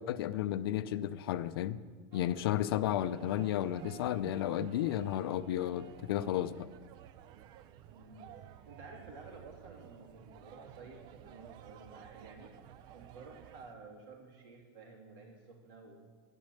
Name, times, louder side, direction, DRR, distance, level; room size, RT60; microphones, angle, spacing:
voice 1, 0.0-1.8 2.1-6.7, left 12 dB, 75° left, 14 dB, 0.6 m, -33 dB
sound 1, 2.1-13.7, right 11 dB, 35° right, 0.4 m, -53 dB
voice 2, 7.9-16.0, right 3 dB, 60° right, 0 dB, 3.1 m, -53 dB
10.5 x 10.0 x 6.5 m, 1.5 s
supercardioid pair, 155°, 13 cm